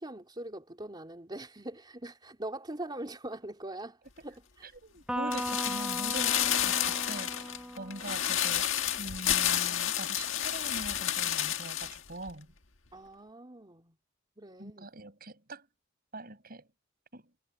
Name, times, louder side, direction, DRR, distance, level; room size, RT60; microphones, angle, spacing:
voice 1, 0.0-4.7 12.9-13.9 14.4-14.9, right 1 dB, 25° right, 3.3 m, -42 dB
voice 2, 4.6-8.7 9.0-12.5 14.6-15.7 16.1-16.7 17.1-17.2, right 2 dB, 50° right, 7.4 m, -43 dB
Electric guitar, 5.1-8.6, equal, 5° right, 1.1 m, -38 dB
sound 1, 5.3-12.0 12.3-12.4, left 11 dB, 75° left, 1.7 m, -30 dB
head